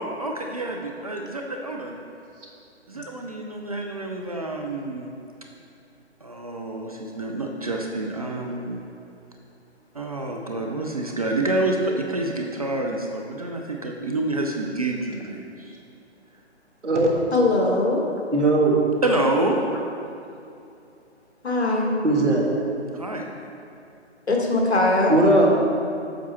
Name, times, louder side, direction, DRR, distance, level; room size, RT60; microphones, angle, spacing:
voice 1, 0.0-2.0 2.9-5.1 6.2-8.8 9.9-15.8 19.0-19.6 22.9-23.2, right 2 dB, 35° right, 1 dB, 0.4 m, -28 dB
voice 2, 17.3-18.0 21.4-22.0 24.3-25.1, left 2 dB, 65° left, 0 dB, 1.4 m, -21 dB
voice 3, 18.3-18.8 22.0-22.5 25.1-25.5, right 1 dB, 85° right, -1 dB, 1.5 m, -18 dB
7.6 x 5.2 x 4.3 m, 2.6 s
figure-of-eight pair, 135°, 35 cm